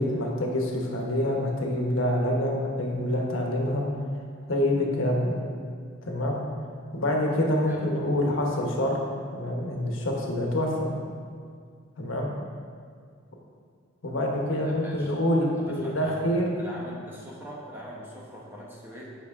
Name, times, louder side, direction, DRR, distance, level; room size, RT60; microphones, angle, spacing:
voice 1, 0.0-3.8 4.5-5.4 6.0-6.4 6.9-9.0 9.3-10.9 12.0-12.3 14.0-16.5, left 1 dB, 80° left, 0 dB, 1.1 m, -26 dB
voice 2, 14.6-15.2 15.6-19.1, equal, 10° right, -4 dB, 1.1 m, -42 dB
8.0 x 5.5 x 3.6 m, 2.1 s
head